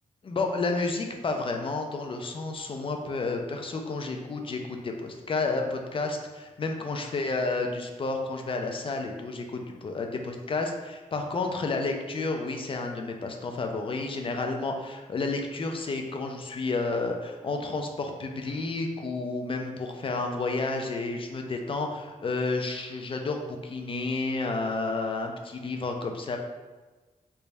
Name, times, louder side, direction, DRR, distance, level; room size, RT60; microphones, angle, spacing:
voice 1, 0.2-26.4, left 3 dB, 40° left, 3 dB, 0.4 m, -31 dB
3.3 x 2.3 x 4.0 m, 1.3 s
wide cardioid pair, 115°, 14 cm